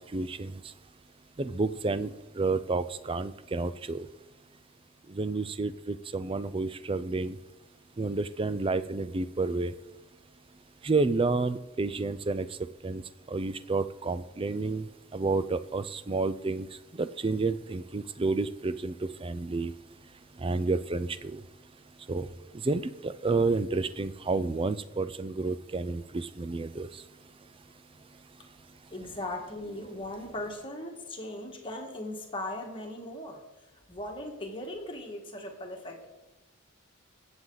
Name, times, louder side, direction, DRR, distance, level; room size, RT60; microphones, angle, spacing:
voice 1, 0.1-0.5 1.4-2.1 2.4-4.1 5.1-7.4 8.0-9.7 10.8-12.5 12.8-13.0 13.3-14.8 15.1-16.7 17.0-18.9 19.2-19.7 20.4-21.4 22.1-22.3 22.6-26.9, right 3 dB, 25° right, 13 dB, 0.4 m, -30 dB
voice 2, 28.9-33.4 33.9-36.1, left 1 dB, 25° left, 1 dB, 1.7 m, -38 dB
20.0 x 8.0 x 3.9 m, 1.1 s
head